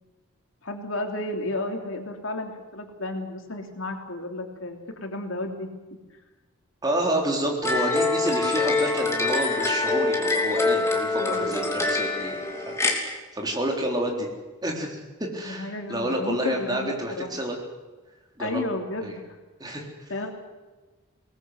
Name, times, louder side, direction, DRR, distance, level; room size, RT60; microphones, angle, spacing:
voice 1, 0.6-5.7 11.2-11.6 15.4-17.3 18.4-19.2 20.1-20.3, left 2 dB, 65° left, 3 dB, 3.1 m, -32 dB
voice 2, 6.8-12.4 12.7-14.3 14.6-17.6 18.4-18.6 19.0-19.1 19.6-19.9, right 1 dB, 20° right, 1 dB, 3.8 m, -29 dB
sound 1, 7.6-12.9, left 3 dB, 15° left, 3.0 m, -25 dB
22.0 x 19.5 x 8.1 m, 1.3 s
head